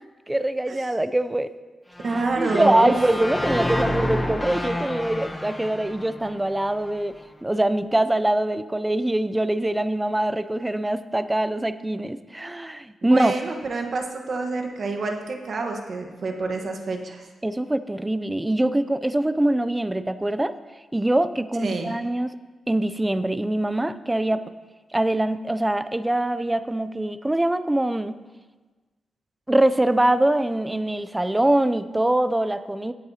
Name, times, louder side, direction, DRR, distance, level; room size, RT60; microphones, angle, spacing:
voice 1, 0.3-1.5 2.3-7.2 7.4-13.3 17.4-20.5 20.9-22.3 22.7-24.4 24.9-28.2 29.5-32.9, right 1 dB, 10° right, 13 dB, 0.4 m, -23 dB
sound 1, 1.9-7.0, left 1 dB, 15° left, 0.9 m, -29 dB
voice 2, 2.0-2.9 13.0-17.3 21.6-21.9, right 3 dB, 55° right, 3 dB, 1.3 m, -27 dB
16.5 x 8.7 x 2.9 m, 1.3 s
cardioid pair, 105°, 0 cm